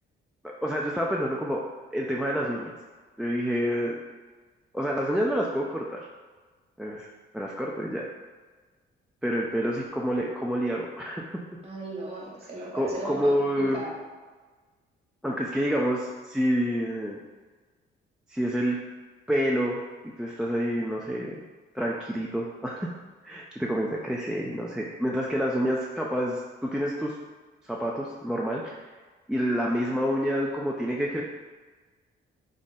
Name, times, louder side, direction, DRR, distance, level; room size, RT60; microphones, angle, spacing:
voice 1, 0.6-1.6 1.9-2.7 3.2-3.9 4.7-6.1 6.8-7.1 7.3-8.1 9.2-11.4 12.7-13.8 15.2-17.2 18.3-18.8 19.3-19.8 20.2-21.4 21.7-22.9 23.2-27.2 27.6-28.9 29.3-31.2, equal, 5° right, -3 dB, 0.3 m, -28 dB
voice 2, 11.6-14.0, right 1 dB, 30° right, -4 dB, 1.2 m, -37 dB
3.6 x 2.1 x 4.0 m, 1.4 s
cardioid pair, 90°, 20 cm